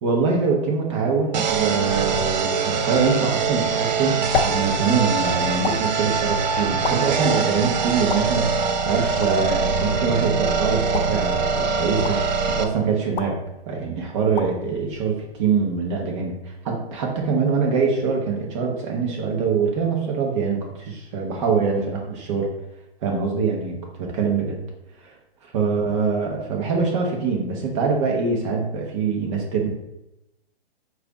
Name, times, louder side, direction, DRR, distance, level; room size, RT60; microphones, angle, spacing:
voice 1, 0.0-12.2 12.5-13.4 13.7-16.4 16.6-22.5 23.0-24.6 25.0-25.1 25.4-29.7, right 5 dB, 30° right, 0 dB, 0.8 m, -24 dB
sound 1, 1.3-12.6, right 5 dB, 45° right, 0.4 m, -23 dB
sound 2, 3.7-15.8, left 5 dB, 60° left, 0.6 m, -34 dB
4.7 x 2.4 x 3.8 m, 0.88 s
hypercardioid pair, 145°, 31 cm